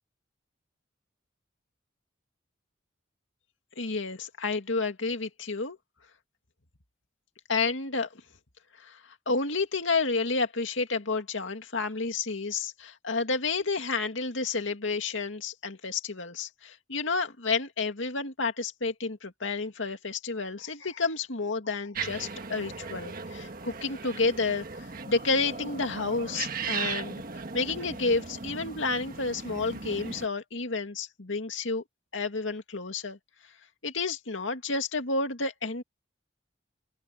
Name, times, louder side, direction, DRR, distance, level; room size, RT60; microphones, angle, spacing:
voice 1, 3.8-5.8 7.5-8.2 8.8-27.2 27.5-31.8 32.1-33.2 33.8-35.8, left 3 dB, 80° left, 2.3 m, -30 dB
sound 1, 21.9-30.3, right 5 dB, 45° right, 1.5 m, -37 dB
open air
head